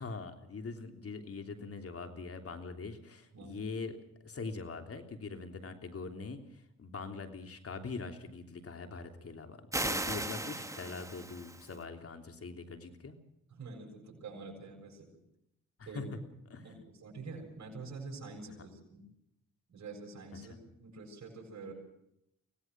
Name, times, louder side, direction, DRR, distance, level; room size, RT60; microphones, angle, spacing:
voice 1, 0.0-13.2 15.9-16.0 16.5-16.8 20.3-20.6, left 4 dB, 50° left, 6 dB, 3.3 m, -43 dB
voice 2, 3.3-3.6 13.5-15.2 15.9-16.2 16.6-19.1 19.7-21.7, right 3 dB, 65° right, -1 dB, 7.4 m, -46 dB
sound 1, 9.7-11.8, right 1 dB, 10° right, 1.7 m, -36 dB
25.0 x 18.0 x 6.2 m, 0.80 s
cardioid pair, 75°, 30 cm